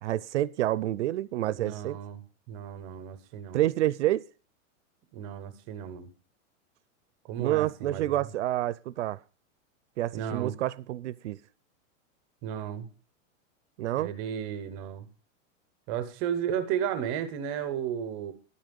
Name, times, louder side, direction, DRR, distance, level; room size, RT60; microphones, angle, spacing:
voice 1, 0.0-2.0 3.5-4.3 7.4-9.2 10.0-11.4 13.8-14.1, right 14 dB, 60° right, 0.5 m, -28 dB
voice 2, 1.5-2.2 2.5-3.6 5.1-6.1 7.2-8.3 10.1-10.5 12.4-12.9 14.0-15.1 15.9-18.3, right 9 dB, 15° right, 0.5 m, -34 dB
11.5 x 9.3 x 5.1 m
supercardioid pair, 180°, 39 cm